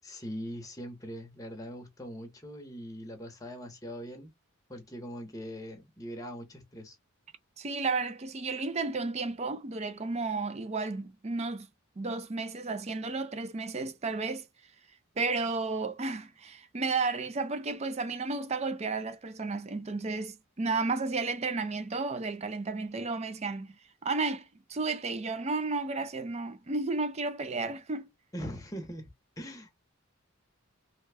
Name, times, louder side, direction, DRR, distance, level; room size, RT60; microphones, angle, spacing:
voice 1, 0.0-4.3 4.7-7.0 28.3-29.1 29.4-29.7, equal, 15° left, 0.9 m, -41 dB
voice 2, 7.6-11.7 12.0-14.5 15.2-28.1, right 3 dB, 30° right, 0.4 m, -33 dB
3.2 x 2.3 x 3.3 m
head